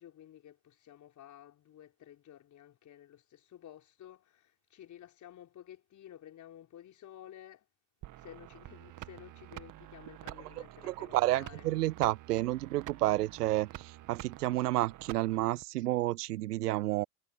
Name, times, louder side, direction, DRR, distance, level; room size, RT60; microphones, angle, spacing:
voice 1, 0.0-7.7 8.1-11.7, left 11 dB, 35° left, 4.9 m, -53 dB
sound 1, 8.0-15.6, right 15 dB, 40° right, 2.2 m, -48 dB
voice 2, 10.8-17.1, right 16 dB, 75° right, 0.6 m, -30 dB
figure-of-eight pair, 80°, 47 cm